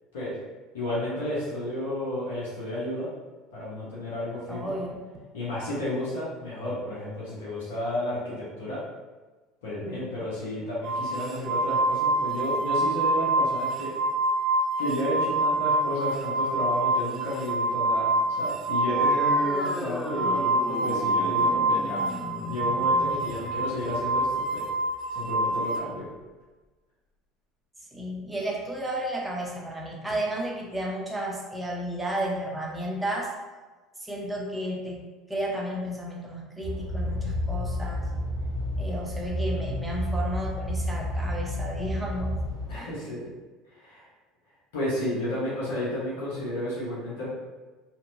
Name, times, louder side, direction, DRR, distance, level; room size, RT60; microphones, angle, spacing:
voice 1, 0.7-3.1 3.5-4.7 5.3-8.8 9.6-13.9 14.8-22.1 22.4-24.6 25.1-26.1 42.7-43.3 43.8-44.0 44.7-47.3, left 1 dB, 75° left, -8 dB, 0.8 m, -32 dB
voice 2, 4.5-5.0 20.1-20.5 27.9-33.3 34.0-38.1 38.8-42.4 42.7-42.9, right 1 dB, 10° right, -2 dB, 0.7 m, -33 dB
sound 1, 10.8-25.8, right 2 dB, 45° right, 0.4 m, -26 dB
sound 2, 18.9-25.9, left 2 dB, 25° left, 0.4 m, -38 dB
sound 3, 36.6-42.7, left 1 dB, 65° right, 0.9 m, -30 dB
2.8 x 2.2 x 2.6 m, 1.3 s
hypercardioid pair, 70°, 0 cm